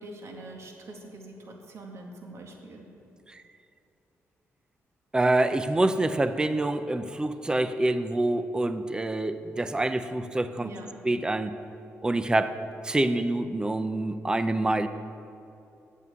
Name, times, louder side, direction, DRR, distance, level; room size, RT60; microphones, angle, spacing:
voice 1, 0.0-2.9 10.6-10.9, right 2 dB, 60° right, 1 dB, 1.9 m, -43 dB
voice 2, 5.1-10.7 11.0-11.6 12.0-12.6 12.8-14.9, right 2 dB, 15° right, 10 dB, 0.5 m, -26 dB
9.1 x 8.4 x 8.2 m, 2.8 s
cardioid pair, 90°, 5 cm